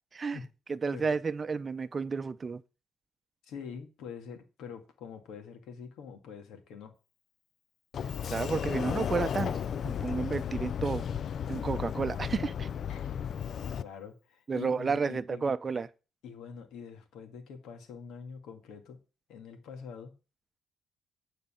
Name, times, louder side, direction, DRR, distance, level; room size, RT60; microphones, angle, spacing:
voice 1, 0.7-2.6 8.3-9.6 9.8-11.0 11.5-12.7 14.5-15.9, right 5 dB, 35° right, 0.6 m, -31 dB
voice 2, 3.4-7.0 12.8-15.4 16.2-19.0 19.3-20.1, left 6 dB, 85° left, 1.9 m, -45 dB
Sliding door, 7.9-13.8, left 8 dB, 60° left, 0.4 m, -34 dB
9.7 x 4.1 x 6.9 m
cardioid pair, 90°, 0 cm